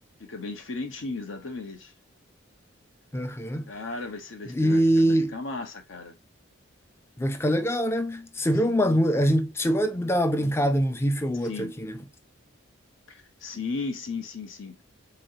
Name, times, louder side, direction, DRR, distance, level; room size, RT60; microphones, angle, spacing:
voice 1, 0.2-1.9 3.7-6.1 7.5-7.6 8.6-8.8 11.4-11.7 13.1-14.8, left 3 dB, 70° left, 1.0 m, -36 dB
voice 2, 3.1-3.7 4.5-5.4 7.2-12.0, equal, 15° left, 0.4 m, -24 dB
3.9 x 3.1 x 2.7 m
head